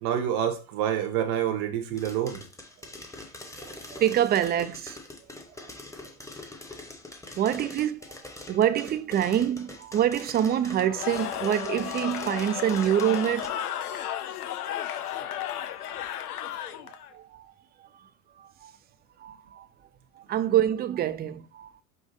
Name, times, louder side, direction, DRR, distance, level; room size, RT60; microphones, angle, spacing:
voice 1, 0.0-2.4, right 10 dB, 55° right, 0.9 m, -27 dB
Pop Corn, 2.0-13.5, left 2 dB, 5° left, 0.9 m, -44 dB
voice 2, 3.6-5.0 5.6-5.7 6.0-6.1 7.4-8.2 8.5-14.0 14.7-16.0 16.7-17.5 17.8-17.9 18.4-18.7 19.2-19.7 20.1-21.8, right 10 dB, 25° right, 0.4 m, -27 dB
Cheering / Crowd, 10.8-17.1, left 11 dB, 90° left, 0.6 m, -34 dB
5.1 x 2.3 x 4.1 m
hypercardioid pair, 85°, 44 cm